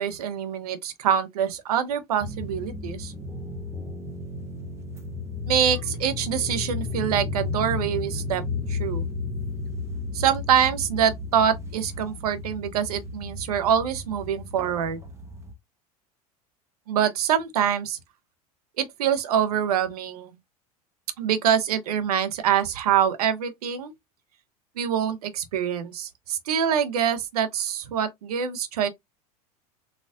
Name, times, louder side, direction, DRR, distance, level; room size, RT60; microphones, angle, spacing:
voice 1, 0.0-3.1 5.5-8.4 8.7-9.0 10.1-15.0 16.9-18.0 18.8-20.3 21.2-23.9 24.8-28.9, right 8 dB, 75° right, 0.8 m, -25 dB
sound 1, 2.2-15.5, left 3 dB, 15° right, 0.8 m, -33 dB
4.3 x 2.3 x 2.5 m
hypercardioid pair, 80°, 20 cm